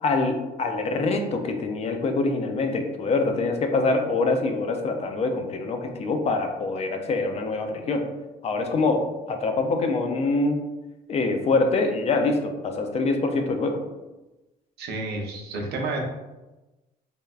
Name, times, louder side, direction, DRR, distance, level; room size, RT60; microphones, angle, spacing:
voice 1, 0.0-8.0 8.4-10.6 11.1-13.8, left 3 dB, 40° left, 5 dB, 0.4 m, -25 dB
voice 2, 14.8-16.0, right 2 dB, 75° right, 0 dB, 0.6 m, -30 dB
3.3 x 2.1 x 2.3 m, 1.1 s
cardioid pair, 110°, 17 cm